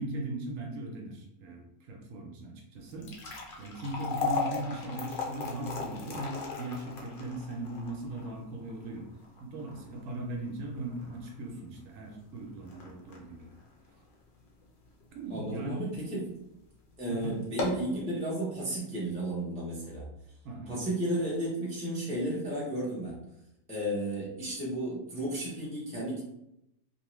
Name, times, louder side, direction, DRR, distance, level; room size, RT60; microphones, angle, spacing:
voice 1, 0.0-3.1 3.6-9.1 9.4-13.5 15.1-15.9 17.1-17.4 20.4-20.8, right 2 dB, 70° right, 0 dB, 1.0 m, -38 dB
sound 1, 2.8-15.1 15.5-15.6 16.3-16.5 16.8-16.9 17.4-17.9, left 4 dB, 60° left, 0.5 m, -38 dB
voice 2, 15.3-16.4 17.0-20.0 20.7-23.2 23.7-26.2, right 1 dB, 10° left, -6 dB, 0.4 m, -33 dB
2.8 x 2.2 x 3.0 m, 0.83 s
omnidirectional pair, 1.5 m